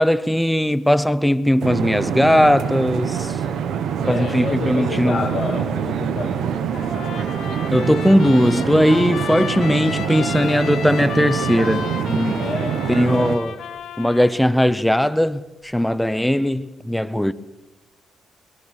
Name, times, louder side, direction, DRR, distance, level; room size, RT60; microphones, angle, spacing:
voice 1, 0.0-3.3 4.1-5.3 7.7-12.5 12.9-13.5 14.0-17.3, equal, 5° left, 0.6 m, -18 dB
sound 1, 1.6-13.4, right 8 dB, 75° right, 1.5 m, -25 dB
voice 2, 4.0-7.0 12.4-13.4, left 4 dB, 30° left, 3.5 m, -29 dB
Trumpet, 6.7-14.3, left 8 dB, 70° left, 2.4 m, -33 dB
22.0 x 21.5 x 6.4 m
cardioid pair, 140°, 0 cm